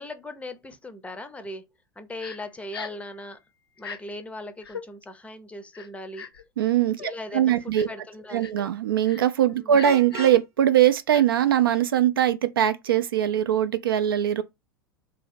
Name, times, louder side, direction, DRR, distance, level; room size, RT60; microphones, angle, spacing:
voice 1, 0.0-1.6 2.0-3.4 3.8-6.3 7.0-8.5 9.6-9.8, left 1 dB, 10° left, 0.5 m, -39 dB
Crying sobbing, 2.2-2.4 2.7-3.0 3.8-4.0 4.6-4.8 5.7-6.4 7.0-7.1 7.7-8.0 8.4-8.6 9.0-9.2 9.7-10.4 11.1-11.2, left 6 dB, 80° left, 0.5 m, -39 dB
voice 2, 6.6-7.9 8.3-14.4, right 10 dB, 70° right, 0.4 m, -21 dB
Vehicle horn car horn honking, 9.8-10.4, right 4 dB, 25° right, 0.7 m, -36 dB
3.0 x 2.7 x 4.1 m
figure-of-eight pair, 85°, 12 cm